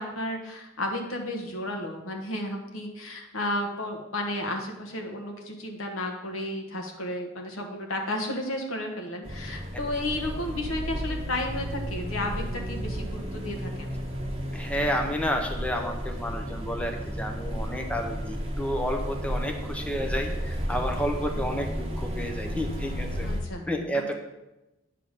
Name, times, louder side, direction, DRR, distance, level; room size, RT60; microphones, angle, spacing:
voice 1, 0.0-14.0 21.3-21.5 23.2-23.6 23.9-24.1, left 1 dB, 90° left, 2 dB, 1.4 m, -33 dB
sound 1, 9.2-23.4, equal, 30° right, 1.3 m, -33 dB
voice 2, 14.5-23.3 23.7-24.1, equal, 5° left, 3 dB, 0.7 m, -31 dB
9.1 x 3.7 x 6.6 m, 0.97 s
head